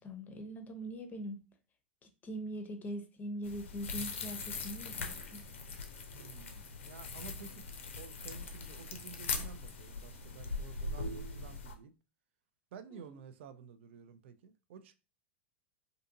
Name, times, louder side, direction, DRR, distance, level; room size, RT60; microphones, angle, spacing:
voice 1, 0.0-1.4 2.2-5.4 13.0-13.2, right 1 dB, 25° left, 0.7 m, -42 dB
sound 1, 3.4-11.7, left 4 dB, 75° left, 0.5 m, -41 dB
voice 2, 6.1-7.7 8.0-11.9 12.7-15.0, right 6 dB, 65° right, 0.4 m, -52 dB
2.5 x 2.5 x 2.5 m
hypercardioid pair, 90°, 7 cm